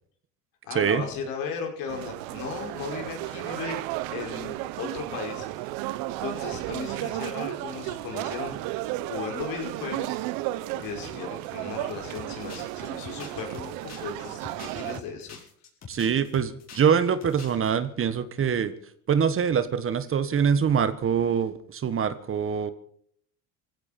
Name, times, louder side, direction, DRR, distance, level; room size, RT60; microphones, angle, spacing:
voice 1, 0.6-3.8 4.1-5.7 6.1-10.2 10.8-15.4, left 6 dB, 70° left, 2 dB, 5.6 m, -36 dB
sound 1, 1.9-15.0, right 16 dB, 70° right, 1.0 m, -34 dB
sound 2, 12.2-16.9 17.2-17.7, left 6 dB, 45° left, 6.1 m, -45 dB
voice 2, 15.9-18.7 19.1-22.7, right 7 dB, 35° right, 12 dB, 1.4 m, -24 dB
19.5 x 16.0 x 4.4 m, 0.62 s
supercardioid pair, 90°, 36 cm